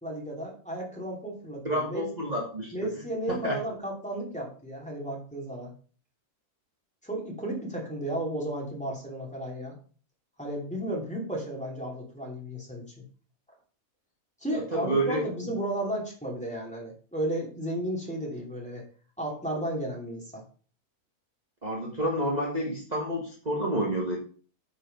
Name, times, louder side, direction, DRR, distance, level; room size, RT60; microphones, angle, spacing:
voice 1, 0.0-2.0 2.7-5.7 7.0-9.7 10.4-12.8 14.4-18.8 19.2-20.4, right 1 dB, 5° left, -3 dB, 2.8 m, -33 dB
voice 2, 1.6-2.7 3.3-3.6 14.5-15.3 21.6-24.2, right 1 dB, 25° right, -2 dB, 1.7 m, -29 dB
8.9 x 5.0 x 5.4 m, 0.41 s
omnidirectional pair, 1.6 m